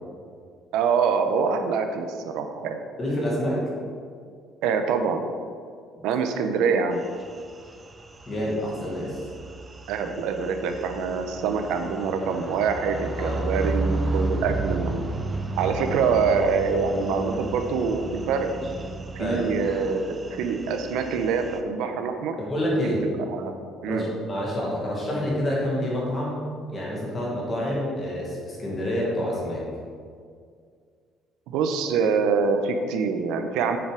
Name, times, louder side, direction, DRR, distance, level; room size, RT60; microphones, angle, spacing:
voice 1, 0.7-2.8 4.6-5.2 6.0-7.0 9.9-15.0 15.6-18.5 19.2-22.4 23.3-23.5 23.8-24.1 31.5-33.8, right 5 dB, 75° right, 6 dB, 0.8 m, -25 dB
voice 2, 3.0-3.6 8.3-9.3 13.2-13.4 19.2-19.5 22.4-23.0 23.9-29.6, equal, 20° left, -5 dB, 1.9 m, -28 dB
sound 1, 7.0-21.6, right 2 dB, 20° right, 0.5 m, -33 dB
7.1 x 7.1 x 4.9 m, 2.1 s
cardioid pair, 180°, 0 cm